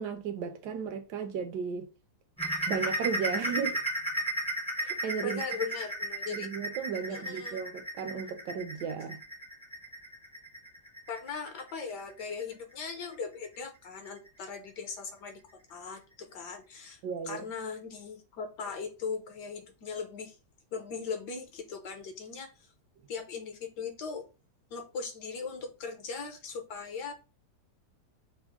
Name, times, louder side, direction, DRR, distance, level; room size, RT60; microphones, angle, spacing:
voice 1, 0.0-1.9 2.7-3.8 4.8-5.4 6.3-9.2 17.0-17.5, right 6 dB, 75° right, 1.2 m, -35 dB
sound 1, 2.4-13.7 14.1-14.3 14.7-14.8 15.3-15.4, right 1 dB, 10° left, 0.3 m, -35 dB
voice 2, 5.2-6.5 7.1-7.6 11.1-20.4 20.7-22.7 23.1-24.3 24.7-27.1, left 5 dB, 75° left, 1.4 m, -39 dB
6.0 x 2.0 x 3.5 m
omnidirectional pair, 1.9 m